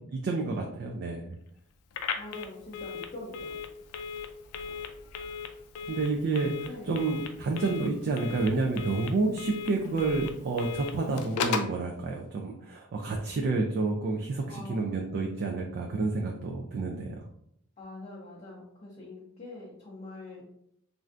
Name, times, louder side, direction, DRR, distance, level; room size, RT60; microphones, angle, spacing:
voice 1, 0.1-1.4 5.9-17.2, right 3 dB, 45° right, 1 dB, 0.3 m, -29 dB
Telephone, 1.9-11.8, left 6 dB, 80° left, 0.4 m, -37 dB
voice 2, 2.1-3.6 6.7-7.0 14.5-15.0 17.8-20.4, left 2 dB, 30° left, -5 dB, 0.6 m, -44 dB
3.2 x 2.5 x 2.4 m, 0.73 s
head